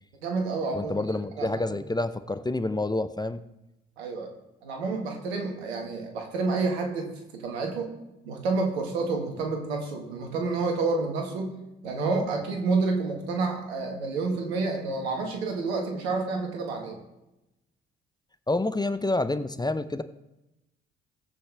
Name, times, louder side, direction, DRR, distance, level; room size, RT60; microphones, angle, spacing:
voice 1, 0.2-1.0 1.4-1.5 4.0-4.3 4.6-7.9 8.2-11.6 11.8-17.0, right 3 dB, 85° right, 2 dB, 1.7 m, -29 dB
voice 2, 0.7-3.4 18.5-20.0, left 2 dB, 15° left, 12 dB, 0.8 m, -28 dB
17.0 x 8.0 x 3.5 m, 0.94 s
hypercardioid pair, 45°, 31 cm